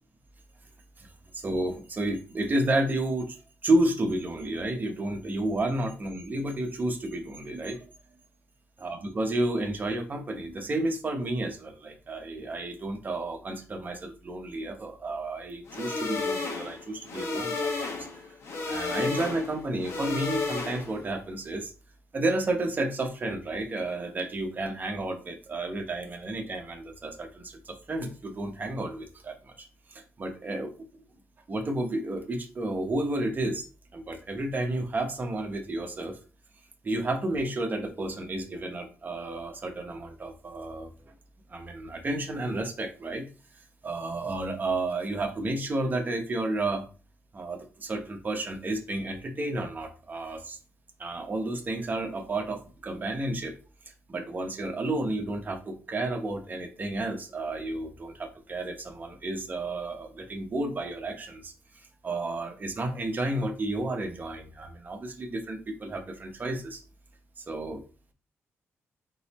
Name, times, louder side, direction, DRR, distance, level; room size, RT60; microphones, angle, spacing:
voice 1, 1.0-7.8 8.8-18.2 18.7-21.7 22.1-30.7 31.5-33.6 33.9-36.2 36.8-40.9 41.5-43.2 43.8-46.8 47.3-50.6 51.0-53.5 54.1-66.8 67.4-67.8, right 2 dB, 35° right, 4 dB, 1.0 m, -31 dB
sound 1, 15.7-21.1, left 3 dB, 65° left, 1.0 m, -32 dB
4.0 x 3.9 x 3.0 m, 0.36 s
cardioid pair, 95°, 5 cm